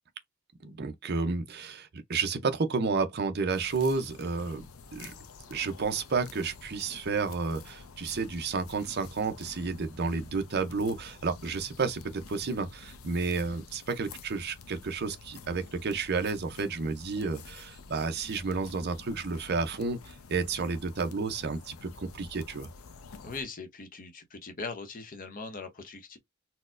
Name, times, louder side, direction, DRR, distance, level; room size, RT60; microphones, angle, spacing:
voice 1, 0.6-4.6 4.9-5.1 5.5-22.7, right 4 dB, 50° right, 0.6 m, -31 dB
sound 1, 3.5-23.4, left 4 dB, 85° left, 0.6 m, -49 dB
voice 2, 23.2-26.2, left 4 dB, 40° left, 0.8 m, -40 dB
4.2 x 2.1 x 2.5 m
head